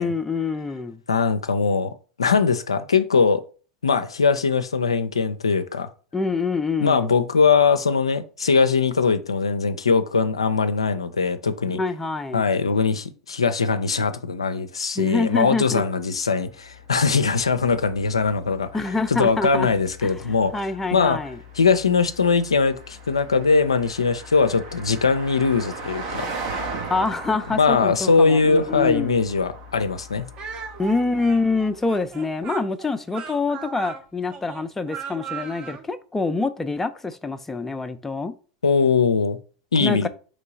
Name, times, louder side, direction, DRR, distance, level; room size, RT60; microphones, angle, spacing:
voice 1, 0.0-1.0 6.1-7.1 11.7-12.5 15.0-15.8 18.7-19.7 20.0-20.2 20.5-21.4 26.9-29.2 30.8-38.3 39.8-40.1, left 3 dB, 10° left, 0.4 m, -26 dB
voice 2, 1.1-3.4 3.8-5.9 6.8-11.8 12.3-18.7 19.1-20.5 20.9-21.2 21.6-26.3 27.5-30.3 38.6-39.4 39.7-40.1, left 5 dB, 90° left, 0.4 m, -21 dB
Car passing by, 16.2-31.9, right 2 dB, 60° right, 1.1 m, -39 dB
Speech, 30.4-35.8, right 7 dB, 35° right, 0.8 m, -37 dB
3.7 x 3.1 x 4.0 m
hypercardioid pair, 90°, 3 cm